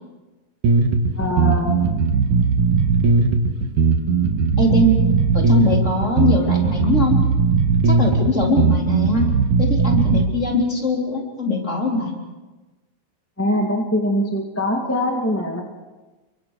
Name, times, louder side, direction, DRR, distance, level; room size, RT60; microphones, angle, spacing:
sound 1, 0.6-10.2, right 4 dB, 85° right, 3.1 m, -18 dB
voice 1, 1.2-1.9 13.4-15.6, left 1 dB, 5° left, 1 dB, 1.3 m, -22 dB
voice 2, 4.6-5.0 5.3-7.2 7.9-9.3 9.6-12.1, left 1 dB, 25° left, 0 dB, 3.7 m, -21 dB
29.0 x 24.0 x 4.8 m, 1.2 s
omnidirectional pair, 3.4 m